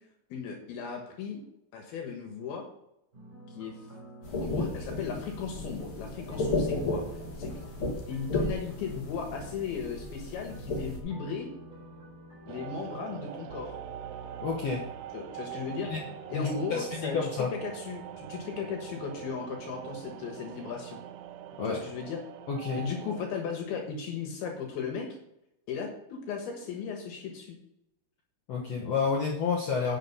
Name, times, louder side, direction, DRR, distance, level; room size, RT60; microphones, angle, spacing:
voice 1, 0.3-1.4 1.7-2.7 3.5-3.8 4.4-7.0 7.4-7.5 8.1-11.5 12.5-13.8 15.1-15.9 16.3-21.0 21.7-22.2 22.7-25.2 25.7-27.5, left 6 dB, 70° left, 3 dB, 3.1 m, -36 dB
sound 1, 3.1-15.7, right 2 dB, 20° right, 3.8 m, -49 dB
sound 2, 4.2-11.0, left 2 dB, 50° left, 1.8 m, -34 dB
sound 3, 12.5-23.3, right 10 dB, 85° right, 2.7 m, -43 dB
voice 2, 14.4-14.9 15.9-16.0 16.3-17.5 21.6-21.8 22.5-22.8 28.5-30.0, left 5 dB, 85° left, -1 dB, 1.4 m, -30 dB
10.0 x 6.5 x 5.4 m, 0.82 s
omnidirectional pair, 4.7 m